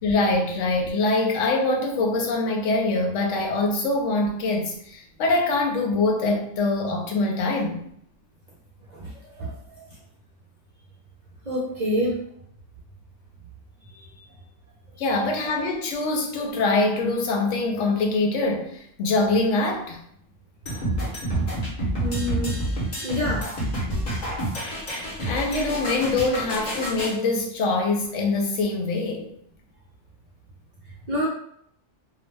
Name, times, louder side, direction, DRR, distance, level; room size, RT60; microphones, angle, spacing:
voice 1, 0.0-7.9 15.0-20.0 25.2-29.3, left 2 dB, 85° left, 2 dB, 0.9 m, -24 dB
voice 2, 8.9-10.0 11.4-12.3 13.8-14.2 14.9-15.0 21.9-23.8 30.8-31.3, equal, 55° right, -4 dB, 0.5 m, -29 dB
sound 1, 20.7-27.1, right 1 dB, 40° left, 0.8 m, -28 dB
2.3 x 2.1 x 3.2 m, 0.69 s
omnidirectional pair, 1.3 m